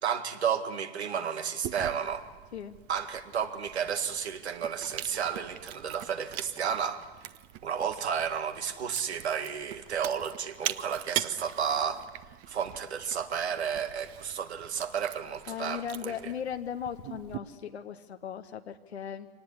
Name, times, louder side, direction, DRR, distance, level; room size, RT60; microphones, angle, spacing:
voice 1, 0.0-2.2 2.9-7.0 7.6-12.0 12.5-16.3, right 7 dB, 85° right, 8 dB, 1.9 m, -32 dB
Chewing mastication, 1.6-17.4, right 13 dB, 45° right, 1.0 m, -42 dB
voice 2, 15.5-19.3, left 8 dB, 90° left, 6 dB, 1.0 m, -37 dB
24.5 x 18.5 x 9.8 m, 1.4 s
hypercardioid pair, 100°, 32 cm